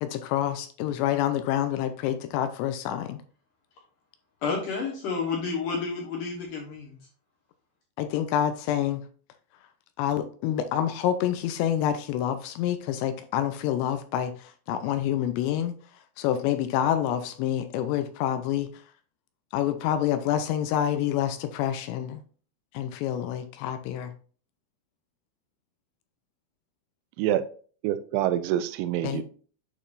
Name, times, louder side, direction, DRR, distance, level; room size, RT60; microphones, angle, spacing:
voice 1, 0.0-3.2 8.0-9.0 10.0-14.3 14.7-15.7 16.2-18.7 19.5-22.2 22.7-24.1 29.0-29.2, left 10 dB, 80° left, 9 dB, 2.7 m, -27 dB
voice 2, 4.4-7.0, left 5 dB, 65° left, -2 dB, 2.3 m, -30 dB
voice 3, 27.8-29.2, right 12 dB, 85° right, 12 dB, 2.8 m, -26 dB
8.6 x 5.2 x 2.5 m, 0.42 s
omnidirectional pair, 5.2 m